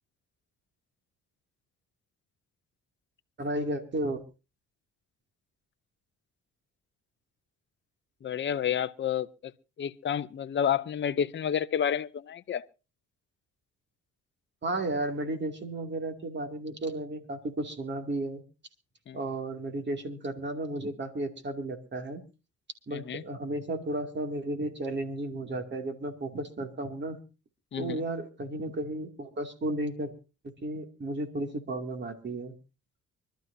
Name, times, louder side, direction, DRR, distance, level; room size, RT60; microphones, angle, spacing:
voice 1, 3.4-4.2 14.6-18.4 19.1-22.2 22.9-27.2 27.8-30.1 30.4-32.5, right 2 dB, 35° right, 2.6 m, -33 dB
voice 2, 8.2-9.5 9.8-12.6 19.1-19.2 22.9-23.2 27.7-28.0, left 8 dB, 40° left, 0.7 m, -30 dB
25.0 x 12.5 x 2.7 m
cardioid pair, 90°, 30 cm